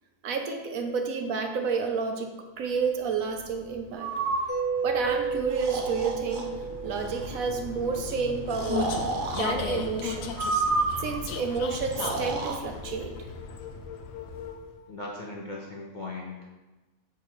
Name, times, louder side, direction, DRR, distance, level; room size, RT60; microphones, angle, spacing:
voice 1, 0.2-4.1 4.8-6.5 6.8-8.9 9.4-10.5 11.0-13.1, right 5 dB, 70° right, 4 dB, 1.0 m, -30 dB
Vehicle, 3.0-14.8, left 6 dB, 70° left, 0.9 m, -37 dB
Breathing, 4.0-4.5 5.5-6.4 6.9-7.3 8.5-9.5 10.3-11.2 11.9-12.6, right 3 dB, 50° right, 0.6 m, -30 dB
Mallet percussion, 4.5-8.2, right 5 dB, 20° left, 1.0 m, -32 dB
voice 2, 14.9-16.5, left 2 dB, 45° left, -3 dB, 0.6 m, -38 dB
6.9 x 4.7 x 3.0 m, 1.1 s
omnidirectional pair, 1.6 m